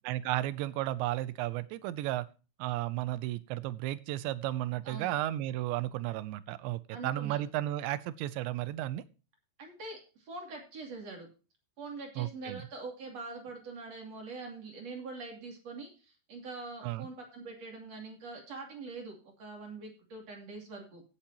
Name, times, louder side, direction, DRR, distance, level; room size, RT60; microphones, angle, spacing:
voice 1, 0.1-2.3 2.6-9.0 12.2-12.6 16.8-17.1, right 15 dB, 90° right, 16 dB, 3.1 m, -34 dB
voice 2, 6.9-7.4 9.6-11.3 11.8-21.0, right 3 dB, 40° right, 2 dB, 3.2 m, -44 dB
17.0 x 8.3 x 2.9 m, 0.33 s
omnidirectional pair, 5.1 m